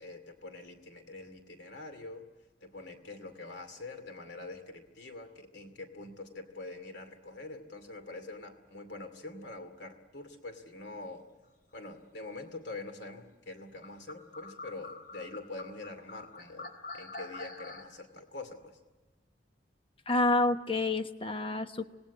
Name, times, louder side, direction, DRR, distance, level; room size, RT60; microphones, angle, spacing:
voice 1, 0.0-2.3 2.6-11.2 11.7-18.8, left 2 dB, 75° left, 7 dB, 2.6 m, -45 dB
sound 1, 13.8-17.8, left 3 dB, 55° left, 3.4 m, -45 dB
voice 2, 20.1-21.8, left 2 dB, 30° left, 8 dB, 1.1 m, -28 dB
26.5 x 19.0 x 8.3 m, 1.3 s
head